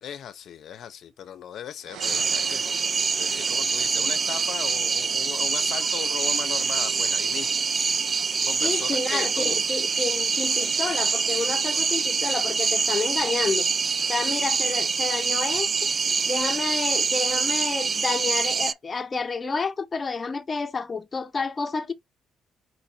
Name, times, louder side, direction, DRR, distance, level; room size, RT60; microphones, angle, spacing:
voice 1, 0.0-2.7 3.2-7.6 8.4-9.6, left 9 dB, 70° left, 0.6 m, -37 dB
sound 1, 1.8-5.7, right 7 dB, 80° right, 0.9 m, -44 dB
sound 2, 2.0-18.7, right 5 dB, 40° right, 0.3 m, -25 dB
voice 2, 8.6-13.7 14.1-15.7 16.3-21.9, left 4 dB, 30° left, 0.7 m, -29 dB
4.4 x 2.6 x 4.3 m
cardioid pair, 90°, 0 cm